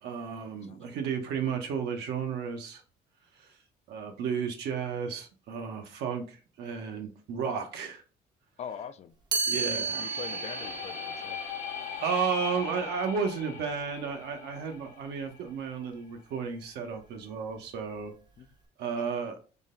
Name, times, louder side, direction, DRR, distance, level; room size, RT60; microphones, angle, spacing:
voice 1, 0.0-2.8 3.4-3.6 3.9-8.0 9.5-10.1 12.0-18.1 18.8-19.4, right 6 dB, 75° right, 0.9 m, -33 dB
voice 2, 8.6-9.1 9.7-11.4, left 8 dB, 40° left, 0.4 m, -42 dB
Chime, 9.3-15.2, right 4 dB, 25° right, 0.6 m, -36 dB
sound 1, 9.8-15.7, left 8 dB, 70° left, 0.7 m, -40 dB
3.7 x 2.2 x 3.7 m
cardioid pair, 110°, 17 cm